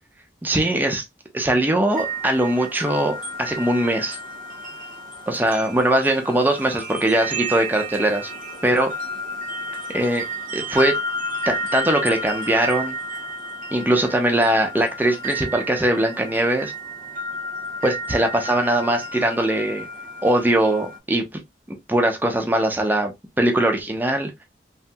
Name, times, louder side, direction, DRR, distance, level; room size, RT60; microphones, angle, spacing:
voice 1, 0.4-1.0 1.3-4.2 5.3-8.3 8.6-8.9 9.9-10.3 10.5-11.0 11.5-13.0 13.7-16.7 17.8-19.8 20.2-21.2 21.7-23.1 23.4-24.3, right 1 dB, 10° right, 0.5 m, -21 dB
sound 1, 1.9-21.0, right 1 dB, 50° right, 0.7 m, -32 dB
3.3 x 2.0 x 2.6 m
head